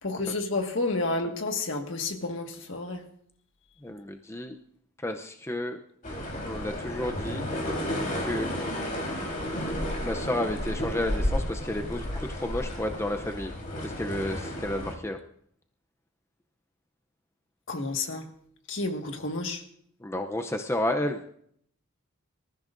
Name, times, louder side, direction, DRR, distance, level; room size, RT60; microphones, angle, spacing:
voice 1, 0.0-3.0 17.7-18.2 18.7-19.6, left 2 dB, 60° left, 4 dB, 1.7 m, -30 dB
voice 2, 3.8-4.6 5.0-5.8 6.4-7.4 8.2-8.8 10.0-13.5 13.8-15.2 20.0-21.2, left 1 dB, 10° left, 4 dB, 0.6 m, -31 dB
sound 1, 6.0-14.9, equal, 40° left, 3.8 m, -32 dB
26.0 x 14.5 x 2.6 m, 0.66 s
head